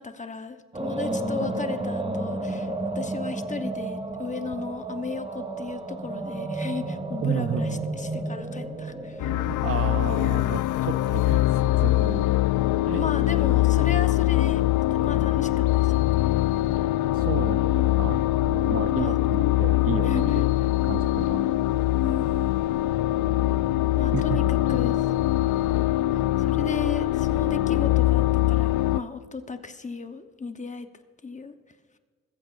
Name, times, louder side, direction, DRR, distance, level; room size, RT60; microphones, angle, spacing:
voice 1, 0.0-9.4 12.9-16.3 18.5-19.2 20.0-20.4 22.0-22.5 24.0-25.1 26.1-30.9 31.2-31.5, left 4 dB, 25° left, 8 dB, 1.0 m, -36 dB
sound 1, 0.7-10.9, right 2 dB, 20° right, 1.3 m, -32 dB
voice 2, 7.2-7.8 9.3-11.4 11.8-12.3 12.9-13.1 17.1-20.4 20.8-21.5 24.1-24.8, right 8 dB, 50° right, 12 dB, 0.7 m, -32 dB
sound 2, 9.2-29.0, left 15 dB, 80° left, 0.5 m, -23 dB
21.0 x 14.5 x 2.5 m, 1.5 s
cardioid pair, 90°, 30 cm